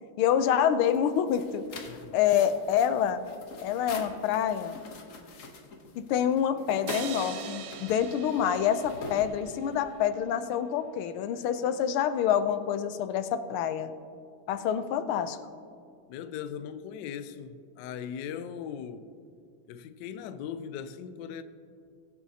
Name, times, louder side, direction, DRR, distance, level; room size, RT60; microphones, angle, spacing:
voice 1, 0.2-1.6 2.1-3.2 3.6-4.7 6.0-13.9 14.5-15.4, left 9 dB, 90° left, 1.5 m, -27 dB
sound 1, 0.8-10.0, left 3 dB, 50° left, 1.1 m, -45 dB
voice 2, 1.9-2.2 16.1-19.1 19.7-21.4, left 8 dB, 75° left, 1.1 m, -39 dB
sound 2, 6.9-10.2, right 7 dB, 65° right, 0.8 m, -42 dB
21.5 x 7.3 x 2.8 m
omnidirectional pair, 2.3 m